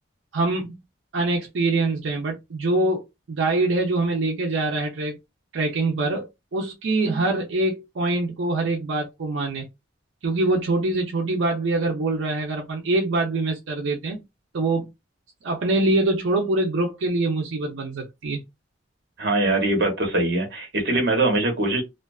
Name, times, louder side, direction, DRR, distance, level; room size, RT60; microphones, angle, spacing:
voice 1, 0.3-0.8 1.1-5.2 5.5-9.7 10.2-14.2 14.5-14.9 15.4-18.4, right 2 dB, 80° right, 0.5 m, -24 dB
voice 2, 19.2-21.8, right 2 dB, 55° right, 0.9 m, -22 dB
2.4 x 2.3 x 2.3 m
head